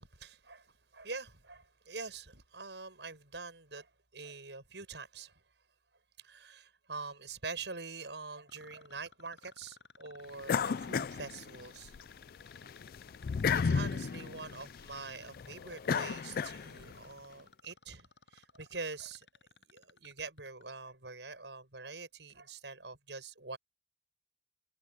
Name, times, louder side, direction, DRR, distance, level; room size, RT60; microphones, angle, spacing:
voice 1, 0.0-5.4 6.2-12.0 12.6-12.7 13.5-19.3 19.6-23.6, right 4 dB, 80° right, 6.9 m, -45 dB
sound 1, 8.5-20.6 22.3-22.4, left 5 dB, 80° left, 6.8 m, -56 dB
sound 2, 10.5-12.0 12.4-17.0, left 6 dB, 55° left, 0.4 m, -33 dB
head